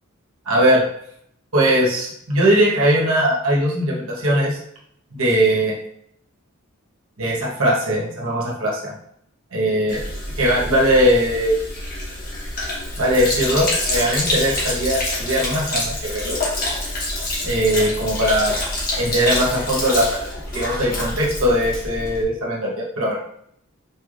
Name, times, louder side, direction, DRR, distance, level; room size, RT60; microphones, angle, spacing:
voice 1, 0.4-0.8 1.5-4.6 5.1-5.7 7.2-8.9 9.5-10.0 10.4-11.6 13.0-16.4 17.4-18.6 19.0-20.2 20.5-23.2, equal, 75° right, -3 dB, 1.3 m, -20 dB
Sink (filling or washing), 9.9-22.2, left 1 dB, 45° left, 1.2 m, -26 dB
4.9 x 3.3 x 2.5 m, 0.70 s
head